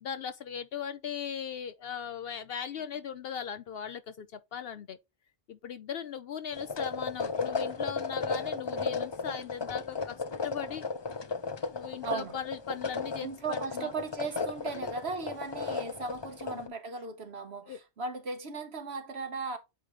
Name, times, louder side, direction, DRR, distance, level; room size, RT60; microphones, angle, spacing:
voice 1, 0.0-5.0 5.5-10.2 10.4-10.8 11.7-13.9 14.8-14.9 16.5-16.6 17.7-17.8, left 8 dB, 65° left, 0.7 m, -38 dB
sound 1, 6.5-16.7, left 4 dB, 35° left, 0.4 m, -35 dB
voice 2, 12.0-12.3 13.2-19.6, right 4 dB, 65° right, 1.2 m, -37 dB
8.5 x 3.3 x 3.7 m
omnidirectional pair, 1.2 m